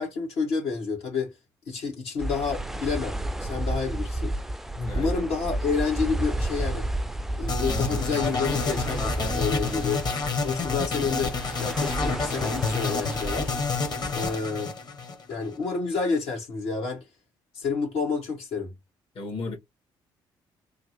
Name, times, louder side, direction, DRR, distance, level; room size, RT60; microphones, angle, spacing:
voice 1, 0.0-1.3 1.7-4.4 4.9-6.9 7.4-10.0 10.4-13.5 14.1-14.7 15.3-17.0 17.5-18.7, left 5 dB, 80° left, 2.0 m, -29 dB
sound 1, 2.2-14.3, right 1 dB, 5° right, 0.3 m, -32 dB
voice 2, 4.7-5.3 19.2-19.6, left 3 dB, 60° left, 1.9 m, -34 dB
sound 2, 7.5-15.6, left 4 dB, 45° left, 1.3 m, -29 dB
3.5 x 2.3 x 3.0 m
supercardioid pair, 70°, 10 cm